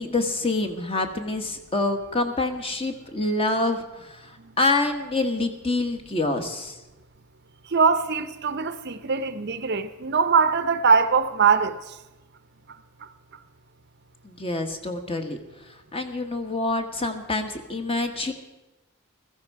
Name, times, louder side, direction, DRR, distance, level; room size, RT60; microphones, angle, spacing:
voice 1, 0.0-6.8 14.2-15.4 15.9-18.3, left 2 dB, 25° left, 1.3 m, -26 dB
voice 2, 7.7-12.0, right 5 dB, 50° right, 0.7 m, -22 dB
15.5 x 14.5 x 4.7 m
head